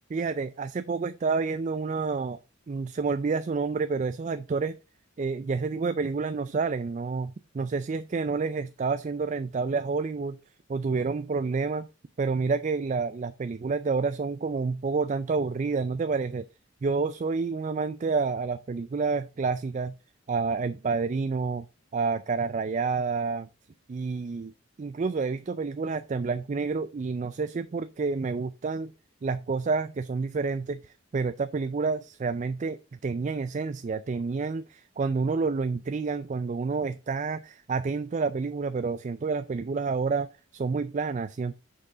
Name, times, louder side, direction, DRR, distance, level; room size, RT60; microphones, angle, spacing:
voice 1, 0.1-2.4 2.7-4.8 5.2-10.4 10.7-11.9 12.2-16.5 16.8-20.0 20.3-21.7 21.9-23.5 23.9-24.5 24.8-28.9 29.2-41.5, right 4 dB, 35° right, 0.3 m, -29 dB
6.6 x 5.6 x 4.9 m
head